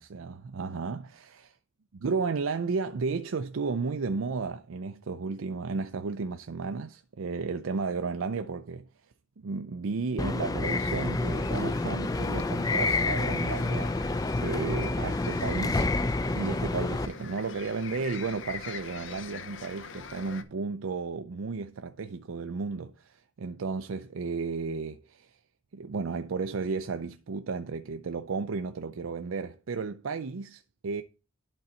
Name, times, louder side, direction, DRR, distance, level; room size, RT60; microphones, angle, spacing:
voice 1, 0.0-1.5 2.0-8.9 9.4-15.9 16.3-25.4 25.7-31.0, right 4 dB, 85° right, 0.5 m, -33 dB
sound 1, 10.2-17.1, left 2 dB, 20° left, 0.4 m, -28 dB
sound 2, 10.6-20.4, left 5 dB, 65° left, 0.8 m, -44 dB
11.5 x 4.0 x 4.2 m
head